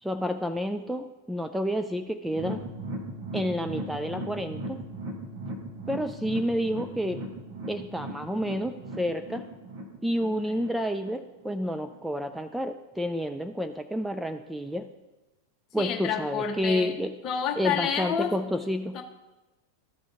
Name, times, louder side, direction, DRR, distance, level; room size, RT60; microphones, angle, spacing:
voice 1, 0.0-2.7 3.3-4.8 5.9-7.2 7.7-9.4 10.0-14.9 15.7-17.1 17.6-19.0, equal, 5° right, 7 dB, 0.3 m, -30 dB
sound 1, 2.3-11.5 11.9-12.0 12.4-12.5, right 1 dB, 40° right, 1.4 m, -38 dB
voice 2, 15.8-16.9 17.2-18.4 18.9-19.0, left 7 dB, 35° left, 5 dB, 0.9 m, -29 dB
13.0 x 5.0 x 3.6 m, 1.1 s
figure-of-eight pair, 90°, 0 cm